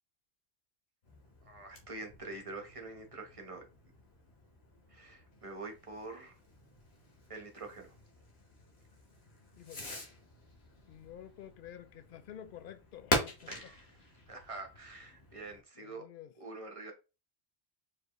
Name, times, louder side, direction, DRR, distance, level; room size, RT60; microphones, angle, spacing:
Fireworks, 1.0-15.6, left 2 dB, 80° left, 1.5 m, -43 dB
voice 1, 1.4-3.6 4.9-6.4 7.3-7.9 13.4-16.0 16.4-16.9, right 3 dB, 35° right, 1.1 m, -46 dB
voice 2, 9.6-9.9 10.9-13.5 15.8-16.3, left 10 dB, 65° left, 0.7 m, -50 dB
4.6 x 3.1 x 3.0 m
omnidirectional pair, 1.0 m